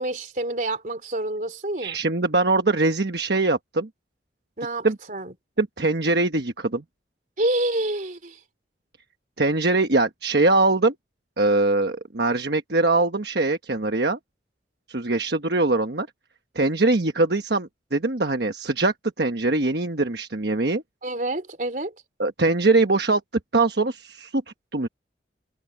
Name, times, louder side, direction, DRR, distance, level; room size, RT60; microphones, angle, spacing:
voice 1, 0.0-2.0 4.6-5.3 7.4-8.4 21.0-21.9, right 1 dB, 45° right, 3.6 m, -28 dB
voice 2, 1.8-3.9 4.8-5.0 5.6-6.8 9.4-10.9 11.4-14.2 14.9-16.1 16.5-20.8 22.2-23.2 23.5-24.4 24.7-24.9, right 2 dB, 60° right, 1.2 m, -22 dB
head